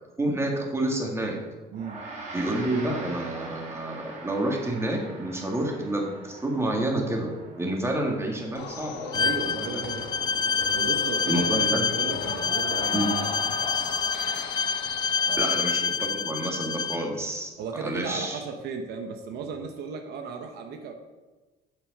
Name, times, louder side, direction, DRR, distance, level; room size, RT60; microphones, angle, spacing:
voice 1, 0.2-1.4 2.3-9.8 11.3-12.1 12.9-13.1 15.2-18.4, right 1 dB, 15° right, 0 dB, 2.0 m, -29 dB
Gong, 1.7-11.4, right 2 dB, 40° right, 2.9 m, -44 dB
voice 2, 1.7-2.0 9.1-10.1 10.7-13.3 15.2-15.5 17.6-20.9, right 5 dB, 75° right, 5 dB, 1.0 m, -35 dB
sound 1, 8.5-15.3, left 5 dB, 90° left, 1.3 m, -37 dB
Bowed string instrument, 9.1-17.0, left 6 dB, 25° left, 0.4 m, -27 dB
7.9 x 7.3 x 5.3 m, 1.2 s
cardioid pair, 110°, 17 cm